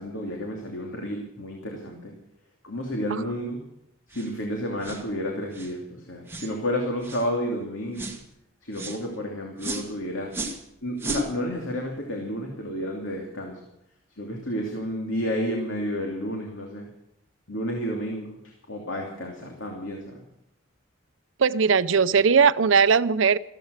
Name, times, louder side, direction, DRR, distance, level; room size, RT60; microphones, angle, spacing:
voice 1, 0.0-2.1 2.6-3.6 4.1-8.1 8.6-10.3 10.8-13.6 14.2-16.9 17.5-18.4 18.7-20.2, equal, 70° left, 1 dB, 2.8 m, -31 dB
sound 1, 4.1-4.3 4.8-5.1 5.5-5.7 6.3-6.5 7.0-7.3 8.0-8.2 8.7-9.0 9.6-9.9 10.3-10.6 11.0-11.3, right 1 dB, 10° right, 2.0 m, -33 dB
voice 2, 21.4-23.4, right 6 dB, 70° right, 15 dB, 0.6 m, -19 dB
15.0 x 14.5 x 6.5 m, 0.79 s
head